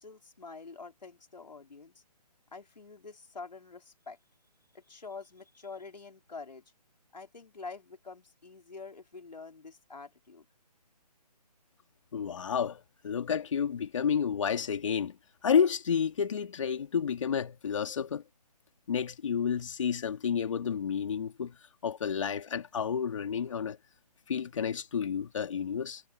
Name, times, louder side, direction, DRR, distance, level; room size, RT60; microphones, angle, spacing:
voice 1, 0.0-2.0 2.5-4.2 4.7-6.6 7.1-10.5, left 4 dB, 85° left, 5.1 m, -46 dB
voice 2, 12.1-15.1 15.4-18.2 18.9-21.5 21.8-23.8 24.3-26.0, left 7 dB, 50° left, 2.7 m, -30 dB
hypercardioid pair, 160°, 21 cm